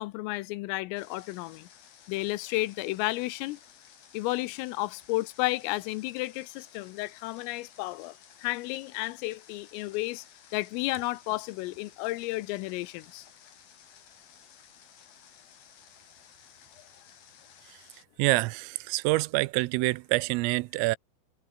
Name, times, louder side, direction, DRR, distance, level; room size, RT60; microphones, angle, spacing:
voice 1, 0.0-1.7 2.1-3.6 4.1-8.1 8.4-10.2 10.5-13.3, left 20 dB, 85° left, 3.4 m, -32 dB
Water, 1.0-18.0, left 8 dB, 50° left, 4.3 m, -55 dB
voice 2, 18.2-21.0, right 22 dB, 85° right, 3.3 m, -26 dB
omnidirectional pair, 5.9 m